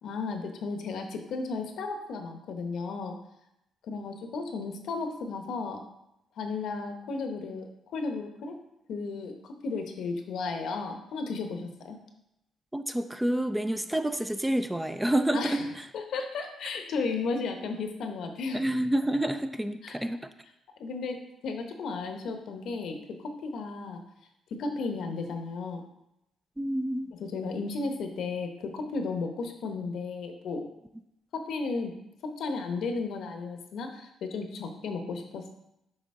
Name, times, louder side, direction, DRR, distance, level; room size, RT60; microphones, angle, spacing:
voice 1, 0.0-3.1 3.8-5.8 6.4-8.6 8.9-12.0 15.3-15.7 15.9-18.6 19.8-20.0 20.8-21.2 21.4-23.0 23.2-24.0 24.6-25.8 27.2-30.7 31.3-31.9 32.2-35.5, left 4 dB, 70° left, 5 dB, 0.9 m, -34 dB
voice 2, 12.7-15.6 18.5-20.2 26.6-27.1, right 1 dB, 10° right, 9 dB, 0.4 m, -28 dB
6.5 x 5.1 x 3.7 m, 0.84 s
cardioid pair, 90°, 0 cm